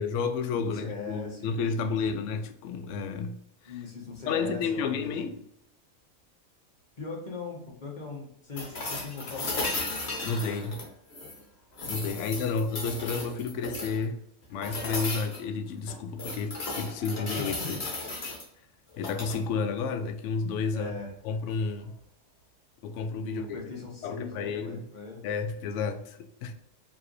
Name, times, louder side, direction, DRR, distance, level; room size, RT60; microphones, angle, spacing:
voice 1, 0.0-3.4 4.3-5.3 10.2-10.8 11.8-14.2 14.5-17.8 19.0-20.9 21.2-21.9 22.8-23.7 24.0-24.9 25.2-26.5, left 5 dB, 70° left, 0.9 m, -31 dB
voice 2, 0.5-2.2 3.7-5.4 7.0-9.8 12.2-12.7 17.3-17.8 20.7-21.1 23.2-25.2, left 3 dB, 35° left, 1.1 m, -40 dB
sound 1, 8.6-11.4 11.8-14.0 14.6-15.4 15.9-18.4 18.9-19.4 21.4-21.5, left 2 dB, 55° left, 1.3 m, -35 dB
4.7 x 3.0 x 3.1 m
omnidirectional pair, 1.4 m